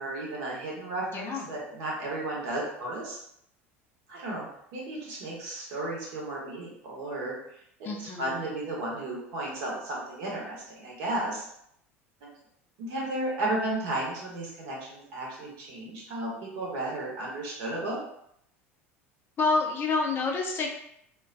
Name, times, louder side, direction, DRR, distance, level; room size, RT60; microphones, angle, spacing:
voice 1, 0.0-3.2 4.1-7.3 7.8-11.5 12.8-18.0, right 2 dB, 55° right, -4 dB, 0.9 m, -34 dB
voice 2, 1.0-1.5 7.8-8.4 19.4-20.7, left 3 dB, 30° left, 0 dB, 0.4 m, -28 dB
2.3 x 2.2 x 2.4 m, 0.73 s
figure-of-eight pair, 70°, 7 cm